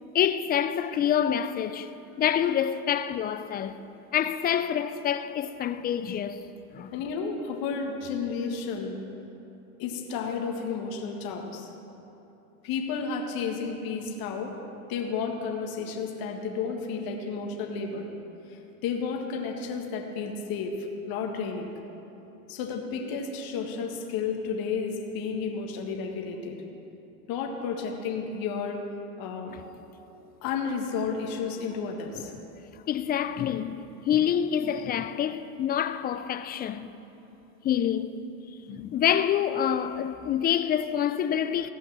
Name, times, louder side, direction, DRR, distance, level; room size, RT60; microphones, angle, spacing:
voice 1, 0.1-1.9 2.2-3.8 4.1-6.4 6.7-6.9 32.3-32.4 32.9-33.8 34.1-36.9 37.6-38.2 38.7-41.7, left 9 dB, 25° left, 0.3 m, -27 dB
voice 2, 6.9-9.0 9.8-11.7 12.6-14.5 14.9-18.1 18.5-20.7 21.1-21.7 22.5-26.6 27.3-28.8 29.2-29.6 30.4-32.3, left 5 dB, 55° left, 1.8 m, -32 dB
16.0 x 5.7 x 7.4 m
hypercardioid pair, 105°, 43 cm